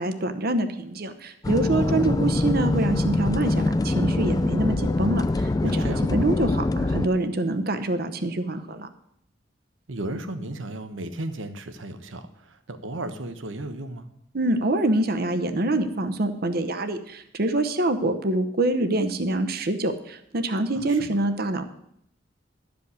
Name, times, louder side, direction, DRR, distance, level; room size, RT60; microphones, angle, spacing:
voice 1, 0.0-8.9 14.3-21.6, right 2 dB, 55° right, 8 dB, 0.9 m, -25 dB
sound 1, 1.4-7.1, left 2 dB, 20° left, 0.3 m, -24 dB
voice 2, 1.7-2.0 5.6-6.1 9.9-14.1 20.7-21.2, right 1 dB, 85° right, 9 dB, 1.1 m, -35 dB
12.0 x 5.2 x 8.2 m, 0.74 s
head